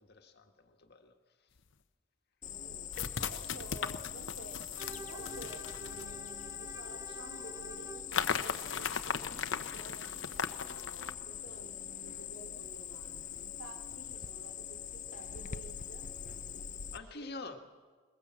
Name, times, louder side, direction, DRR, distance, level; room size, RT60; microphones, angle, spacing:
voice 1, 0.0-1.5 3.7-4.1 16.9-17.6, left 3 dB, 55° left, 5 dB, 1.6 m, -47 dB
sound 1, 1.6-1.7 2.9-6.8 8.1-11.2, left 6 dB, 75° left, 0.9 m, -38 dB
Cricket, 2.4-17.0, left 8 dB, 40° left, 0.6 m, -43 dB
voice 2, 2.4-2.9 3.2-4.6 4.9-17.3, right 2 dB, 85° right, 5 dB, 2.9 m, -52 dB
Bowed string instrument, 4.7-8.1, right 3 dB, 20° right, 0.7 m, -49 dB
21.5 x 21.0 x 7.6 m, 1.5 s
head